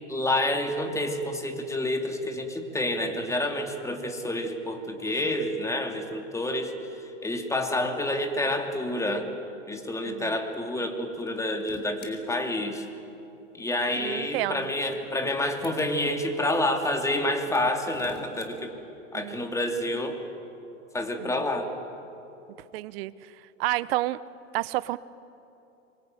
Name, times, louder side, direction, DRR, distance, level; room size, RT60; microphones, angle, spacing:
voice 1, 0.0-6.7 7.2-9.3 9.7-12.9 13.5-18.7 19.1-20.2 20.9-21.7, left 1 dB, 10° left, 4 dB, 2.9 m, -28 dB
voice 2, 10.0-10.4 14.0-14.7 19.1-19.4 21.2-21.5 22.7-23.3 23.6-24.2 24.5-25.0, right 18 dB, 50° right, 18 dB, 1.0 m, -30 dB
sound 1, 11.1-12.1 14.4-15.9 17.4-18.5, left 3 dB, 25° left, 4.5 m, -48 dB
27.0 x 22.5 x 9.3 m, 2.9 s
hypercardioid pair, 105°, 39 cm